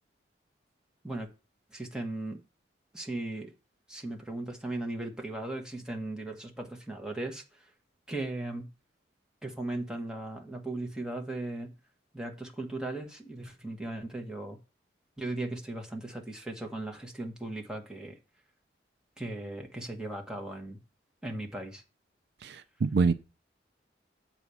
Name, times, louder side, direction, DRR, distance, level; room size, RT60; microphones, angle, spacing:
voice 1, 1.7-2.4 2.9-3.5 3.9-7.7 8.1-8.7 9.4-11.7 12.1-14.6 15.2-18.2 19.2-20.8 21.2-21.8, right 2 dB, 5° right, 1.4 m, -37 dB
voice 2, 22.4-23.1, right 4 dB, 65° right, 0.5 m, -26 dB
8.1 x 4.2 x 6.9 m
head